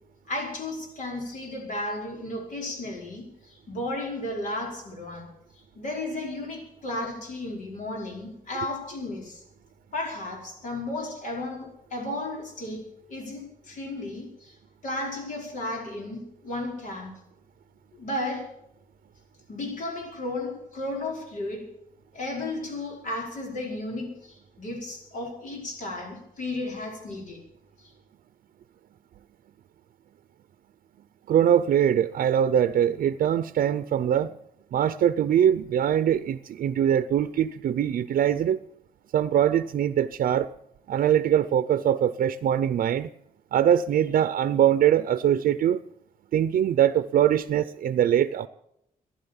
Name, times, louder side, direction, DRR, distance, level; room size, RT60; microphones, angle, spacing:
voice 1, 0.3-5.3 5.5-9.4 9.9-14.5 14.8-17.1 17.9-18.5 19.5-21.7 22.1-27.4 27.8-27.9, left 2 dB, 65° left, 5.1 m, -34 dB
voice 2, 31.3-34.3 34.7-38.6 39.1-40.5 40.9-43.1 43.5-45.8 46.3-48.5, right 10 dB, 90° right, 0.6 m, -22 dB
14.5 x 11.0 x 7.1 m
wide cardioid pair, 165°, 14 cm